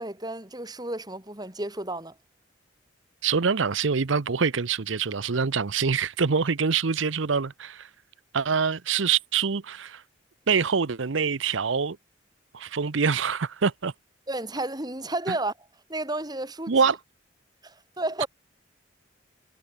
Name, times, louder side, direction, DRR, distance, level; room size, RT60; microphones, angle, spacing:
voice 1, 0.0-2.2 14.3-15.5 15.9-16.7 17.6-18.3, right 2 dB, 20° right, 4.0 m, -32 dB
voice 2, 3.2-7.9 8.3-10.0 10.5-12.0 12.5-13.9 15.3-15.4 16.7-17.0, right 5 dB, 75° right, 0.7 m, -25 dB
head